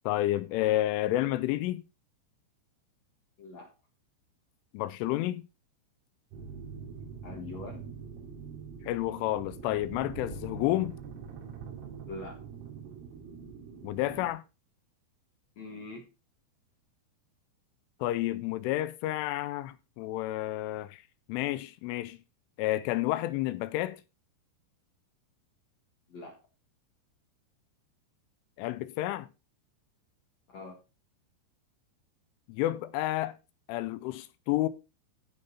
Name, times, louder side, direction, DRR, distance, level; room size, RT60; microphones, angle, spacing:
voice 1, 0.1-1.8 4.7-5.5 8.8-11.0 13.8-14.4 18.0-21.0 21.3-22.2 22.6-24.0 28.6-29.3 32.5-33.4 33.7-34.7, left 15 dB, 85° left, 3.1 m, -30 dB
voice 2, 3.4-3.7 7.2-8.0 12.1-12.4 15.6-16.1 26.1-26.4 30.5-30.8, left 3 dB, 55° left, 1.9 m, -43 dB
sound 1, 6.3-14.3, right 6 dB, 90° right, 4.5 m, -44 dB
15.5 x 5.3 x 4.1 m
omnidirectional pair, 5.7 m